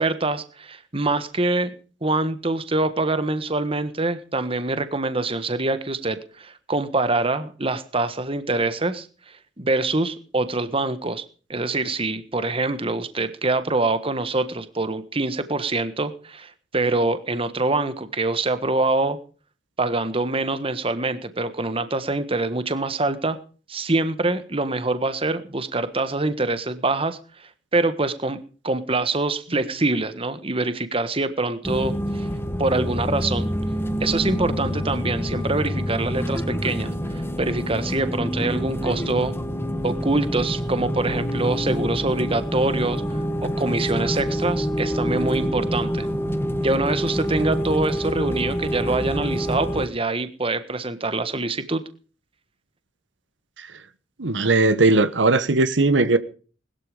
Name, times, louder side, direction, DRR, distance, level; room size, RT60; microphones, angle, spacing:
voice 1, 0.0-1.7 2.0-9.1 9.6-11.2 11.5-19.2 19.8-23.4 23.7-32.3 32.6-33.5 34.0-39.4 39.8-43.0 43.4-46.1 46.6-51.8, right 2 dB, 30° right, 1.5 m, -25 dB
sound 1, 31.6-49.9, equal, 15° left, 1.3 m, -26 dB
voice 2, 54.2-56.2, right 3 dB, 75° right, 1.4 m, -18 dB
20.5 x 13.0 x 5.1 m
head